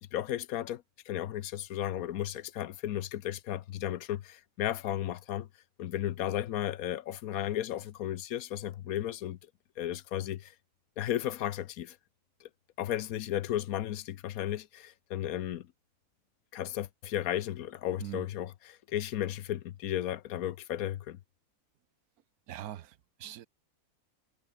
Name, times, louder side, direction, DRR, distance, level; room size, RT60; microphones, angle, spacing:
voice 1, 0.1-5.5 5.8-9.4 9.8-10.5 11.0-12.0 12.4-12.5 12.8-15.7 16.5-21.2, left 12 dB, 75° left, 1.2 m, -34 dB
voice 2, 22.5-23.5, right 12 dB, 85° right, 1.3 m, -42 dB
omnidirectional pair, 1.5 m